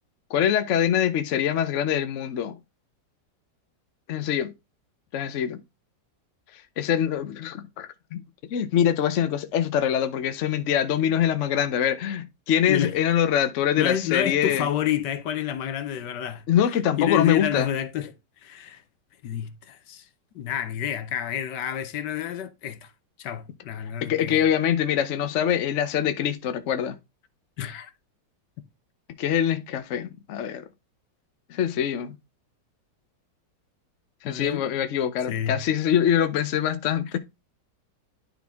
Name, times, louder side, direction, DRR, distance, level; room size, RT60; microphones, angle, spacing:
voice 1, 0.3-2.6 4.1-4.5 5.1-5.6 6.8-8.2 8.5-14.7 16.5-17.7 24.0-27.0 29.2-30.7 31.5-32.2 34.2-37.2, left 9 dB, 55° left, 0.9 m, -24 dB
voice 2, 13.8-16.4 17.0-18.1 18.4-18.8 19.2-20.0 20.3-22.9 23.2-24.4 27.6-27.9 34.2-34.7 35.3-35.6, left 10 dB, 70° left, 1.3 m, -29 dB
10.5 x 3.9 x 3.5 m
omnidirectional pair, 2.0 m